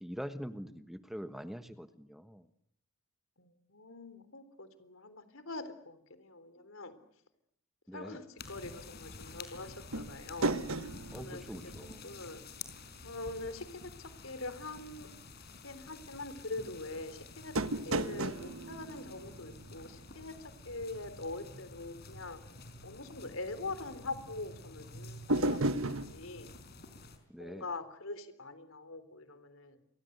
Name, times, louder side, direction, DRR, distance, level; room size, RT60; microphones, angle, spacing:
voice 1, 0.0-2.5 7.9-8.2 11.1-12.0 27.3-27.6, equal, ahead, 10 dB, 1.2 m, -44 dB
voice 2, 3.4-7.0 7.9-10.6 11.2-11.7 12.0-12.4 13.0-15.1 15.6-22.4 22.8-26.6 27.4-29.8, left 2 dB, 65° left, 12 dB, 3.8 m, -43 dB
sound 1, 8.4-27.2, left 3 dB, 50° left, 4.6 m, -50 dB
sound 2, 9.9-12.6 12.8-12.9 17.6-20.1 25.3-26.2, right 2 dB, 70° right, 1.4 m, -34 dB
29.5 x 25.0 x 8.1 m, 0.74 s
head